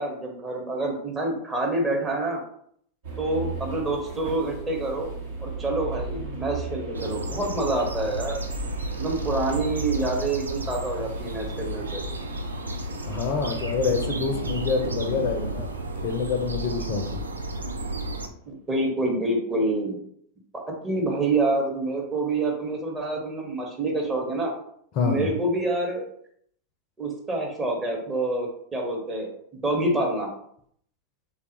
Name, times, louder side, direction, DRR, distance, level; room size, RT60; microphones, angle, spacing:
voice 1, 0.0-2.4 3.2-5.1 5.4-8.4 9.0-12.0 18.5-20.0 20.8-24.5 25.0-26.0 27.0-29.3 29.6-30.3, right 2 dB, 20° right, 0 dB, 0.8 m, -27 dB
sound 1, 3.0-18.2, right 3 dB, 55° right, 0.9 m, -37 dB
sound 2, 6.9-18.3, right 1 dB, 75° right, 0.3 m, -33 dB
voice 2, 13.1-15.7 16.0-17.2 25.0-25.3, left 5 dB, 45° left, 4 dB, 0.5 m, -27 dB
3.3 x 2.3 x 2.8 m, 0.67 s
figure-of-eight pair, 90°, 0 cm